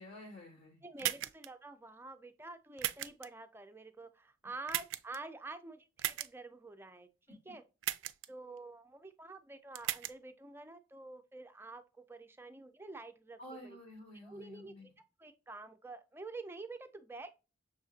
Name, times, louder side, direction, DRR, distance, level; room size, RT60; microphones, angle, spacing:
voice 1, 0.0-1.1 13.4-14.9, left 1 dB, 50° left, 1.3 m, -51 dB
voice 2, 0.8-7.6 8.3-13.8 14.2-14.7 15.2-17.3, right 3 dB, 10° right, 0.4 m, -48 dB
sound 1, 1.0-1.5 2.8-3.3 4.7-5.2 6.0-6.3 7.8-8.3 9.8-10.1, right 14 dB, 90° right, 0.3 m, -36 dB
6.3 x 2.5 x 2.3 m
head